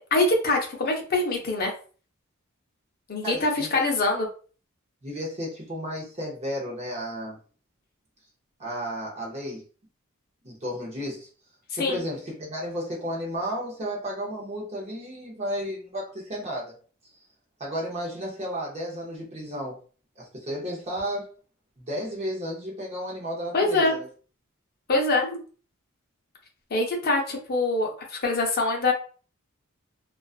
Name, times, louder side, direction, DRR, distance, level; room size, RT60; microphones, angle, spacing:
voice 1, 0.1-1.7 3.1-4.3 11.8-12.0 23.5-23.9 24.9-25.4 26.7-28.9, left 2 dB, 45° left, 1 dB, 0.6 m, -24 dB
voice 2, 3.2-3.8 5.0-7.4 8.6-9.6 10.4-11.3 11.8-16.7 17.6-19.8 20.2-21.4 21.8-24.1, equal, 30° right, -3 dB, 0.6 m, -33 dB
2.4 x 2.3 x 2.3 m, 0.39 s
head